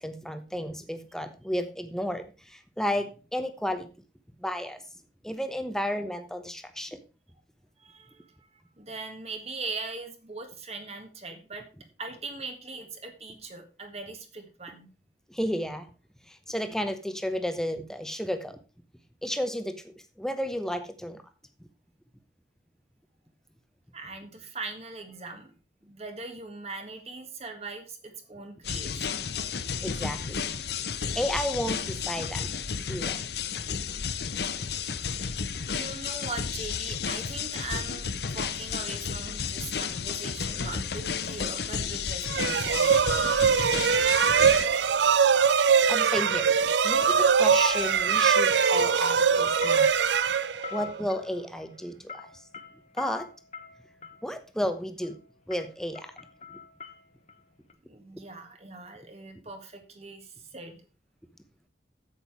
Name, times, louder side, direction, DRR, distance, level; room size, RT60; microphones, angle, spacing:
voice 1, 0.0-3.9 4.4-4.8 5.2-7.0 15.3-15.9 16.3-18.6 19.2-21.2 29.8-30.4 31.1-32.5 32.9-33.2 45.9-49.9 50.7-52.4 52.9-53.3 54.2-55.2 55.5-56.1, equal, 5° left, 9 dB, 0.9 m, -32 dB
voice 2, 7.8-8.3 8.8-11.7 12.0-14.9 23.9-25.5 25.8-29.3 35.7-43.1 57.8-60.8, right 3 dB, 35° right, 5 dB, 1.7 m, -40 dB
sound 1, 28.6-44.7, left 6 dB, 65° left, 0.7 m, -32 dB
sound 2, 42.3-51.0, right 6 dB, 85° right, 0.5 m, -22 dB
sound 3, 43.2-43.3 45.0-46.3 46.6-54.3 55.0-55.2 55.5-57.4 57.7-57.8, left 6 dB, 40° left, 1.1 m, -43 dB
8.4 x 7.8 x 4.7 m, 0.33 s
head